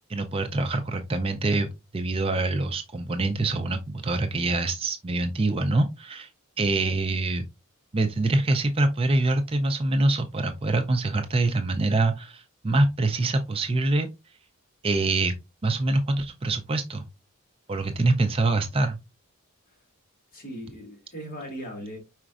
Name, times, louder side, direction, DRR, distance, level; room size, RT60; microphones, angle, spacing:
voice 1, 0.1-1.7 1.9-6.3 6.6-7.5 7.9-14.1 14.8-15.3 15.6-17.1 17.7-19.0, right 2 dB, 25° right, 0.4 m, -25 dB
voice 2, 20.3-22.0, equal, 40° left, 2.1 m, -38 dB
5.0 x 4.3 x 2.4 m
head